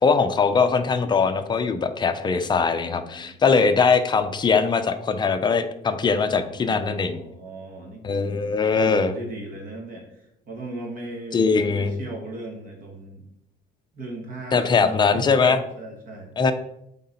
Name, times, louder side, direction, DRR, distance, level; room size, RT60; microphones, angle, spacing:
voice 1, 0.0-7.2 8.0-9.1 11.3-11.9 14.5-15.6 16.4-16.5, left 5 dB, 25° left, 8 dB, 0.5 m, -21 dB
voice 2, 2.8-3.7 6.2-13.3 13.9-16.3, right 2 dB, 45° right, 1 dB, 1.5 m, -37 dB
7.9 x 3.8 x 4.3 m, 0.79 s
cardioid pair, 150°, 19 cm